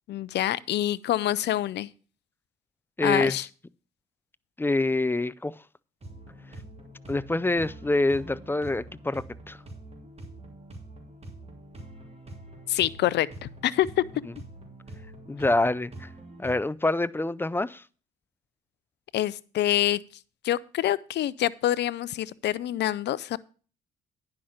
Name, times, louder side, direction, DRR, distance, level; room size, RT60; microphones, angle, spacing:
voice 1, 0.1-1.9 3.0-3.5 12.7-14.0 19.1-20.0 20.4-23.4, left 13 dB, 65° left, 0.5 m, -26 dB
voice 2, 3.0-3.4 4.6-5.5 7.1-9.6 15.3-16.1 16.4-17.8, left 2 dB, 10° left, 0.5 m, -26 dB
sound 1, 6.0-16.6, right 1 dB, 35° right, 2.9 m, -45 dB
10.0 x 5.8 x 6.4 m
supercardioid pair, 60°, 19 cm